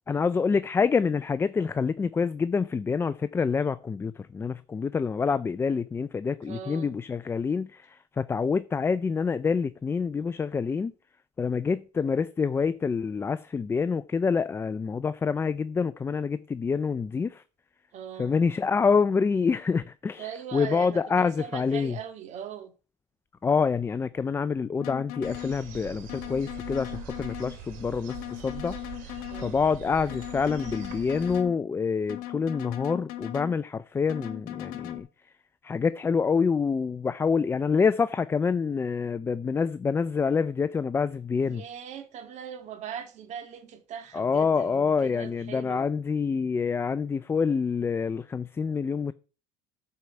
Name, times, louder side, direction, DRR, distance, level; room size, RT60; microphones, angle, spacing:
voice 1, 0.1-10.9 11.4-17.4 18.2-20.2 20.5-22.0 23.4-28.8 29.4-35.1 35.6-41.6 44.1-49.1, left 5 dB, 15° left, 0.3 m, -27 dB
voice 2, 6.4-7.0 17.9-18.4 20.2-22.7 29.3-29.7 41.3-45.9, right 8 dB, 50° right, 1.7 m, -40 dB
sound 1, 24.8-25.6 26.1-27.6 28.1-29.6 30.1-31.6 32.1-33.6 34.1-35.0, left 15 dB, 70° left, 1.3 m, -38 dB
sound 2, 25.2-31.4, right 7 dB, 65° right, 3.1 m, -43 dB
9.5 x 4.7 x 6.8 m
supercardioid pair, 120°, 15 cm